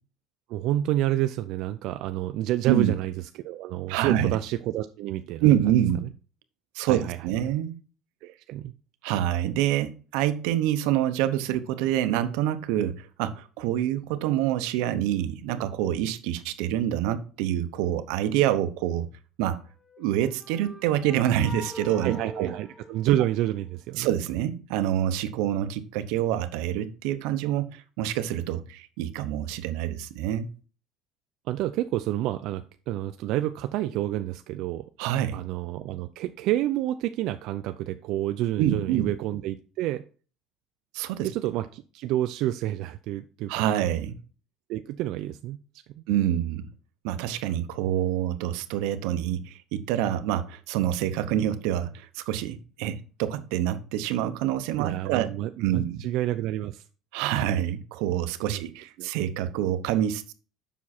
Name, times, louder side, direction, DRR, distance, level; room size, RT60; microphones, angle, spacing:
voice 1, 0.5-3.1 3.4-5.5 6.0-6.1 6.8-7.2 8.2-8.7 22.0-24.1 31.5-34.9 35.3-40.0 41.2-43.6 44.7-45.6 54.8-56.8 58.5-58.6 59.0-59.1, right 14 dB, 65° right, 0.4 m, -29 dB
voice 2, 3.9-4.3 5.4-6.0 6.7-7.8 9.0-19.1 19.4-19.6 20.0-22.5 24.0-30.5 35.0-35.4 38.6-39.1 40.9-41.3 43.5-44.2 46.1-46.7 47.0-55.3 55.6-56.0 57.1-60.3, right 11 dB, 90° right, 0.9 m, -26 dB
sound 1, 19.8-23.7, right 1 dB, 15° left, 0.9 m, -43 dB
7.3 x 6.0 x 4.3 m
cardioid pair, 150°, 0 cm